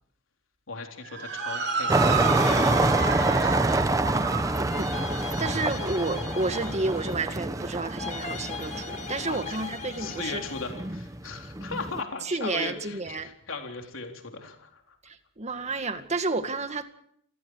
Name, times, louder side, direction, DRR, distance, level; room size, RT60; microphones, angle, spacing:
voice 1, 0.7-2.9 3.4-3.9 9.3-9.6 10.0-15.0, left 4 dB, 75° left, 3.8 m, -38 dB
Motor vehicle (road) / Siren, 1.0-9.6, right 6 dB, 55° right, 3.8 m, -33 dB
sound 1, 1.2-4.0 4.7-7.5 7.9-10.9, left 6 dB, 35° left, 2.2 m, -40 dB
sound 2, 1.9-12.0, right 2 dB, 15° right, 1.0 m, -27 dB
voice 2, 4.5-10.4 12.3-13.3 15.1-16.8, right 3 dB, 35° right, 2.1 m, -31 dB
29.0 x 21.0 x 4.8 m
head